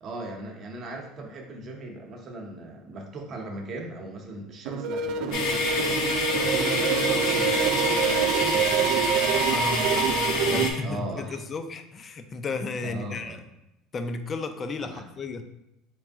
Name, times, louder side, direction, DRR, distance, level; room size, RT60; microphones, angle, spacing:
voice 1, 0.0-9.0 10.4-11.4 12.8-13.4 14.8-15.0, right 1 dB, 40° right, 2 dB, 0.8 m, -38 dB
sound 1, 4.7-10.7, right 6 dB, 65° right, 0.3 m, -25 dB
sound 2, 5.3-10.7, left 4 dB, 70° left, 0.7 m, -28 dB
voice 2, 6.9-7.3 9.2-10.1 10.5-13.4 13.9-15.4, left 4 dB, 30° left, 8 dB, 0.4 m, -34 dB
3.6 x 3.1 x 3.5 m, 0.88 s
supercardioid pair, 120°, 0 cm